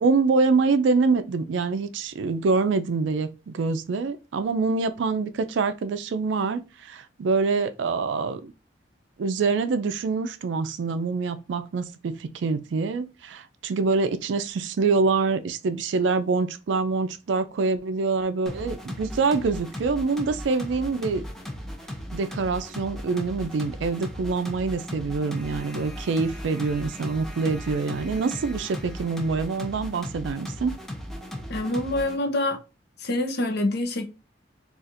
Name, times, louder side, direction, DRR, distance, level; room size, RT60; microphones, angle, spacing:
voice 1, 0.0-8.4 9.2-21.2 22.1-30.8, right 4 dB, 70° right, 0.4 m, -25 dB
sound 1, 18.5-32.2, left 1 dB, 5° left, 0.5 m, -37 dB
voice 2, 31.5-32.6 33.0-34.0, left 1 dB, 55° left, 0.6 m, -26 dB
4.0 x 2.4 x 2.5 m
head